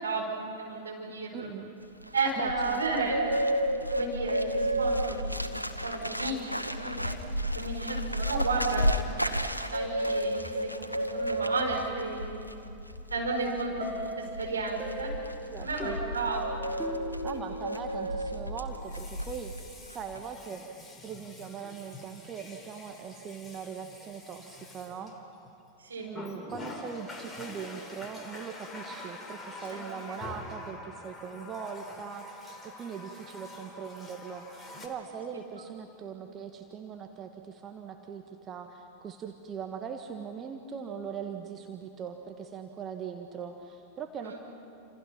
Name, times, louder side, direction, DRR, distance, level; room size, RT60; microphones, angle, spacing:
voice 1, 0.0-1.5 2.1-3.2 3.9-5.5 5.8-7.1 7.5-8.9 9.2-9.3 9.7-12.5 13.1-15.1 15.6-16.6 17.3-17.5 25.8-26.1 29.7-29.8 30.0-30.2 44.2-44.3, right 3 dB, 75° right, -1 dB, 5.4 m, -33 dB
voice 2, 1.3-1.7 2.4-2.8 15.5-16.0 17.2-20.7 21.0-25.1 26.0-44.4, right 7 dB, 25° right, 5 dB, 1.5 m, -41 dB
Bird, 1.8-19.6 19.9-20.2, equal, 90° left, 1.1 m, -32 dB
sound 1, 13.8-18.5, equal, 5° right, 2.7 m, -40 dB
Water tap faucet, 15.2-15.3 18.7-25.6 26.1-34.9, left 2 dB, 10° left, 3.2 m, -46 dB
29.0 x 27.5 x 5.8 m, 2.6 s
figure-of-eight pair, 90°, 0 cm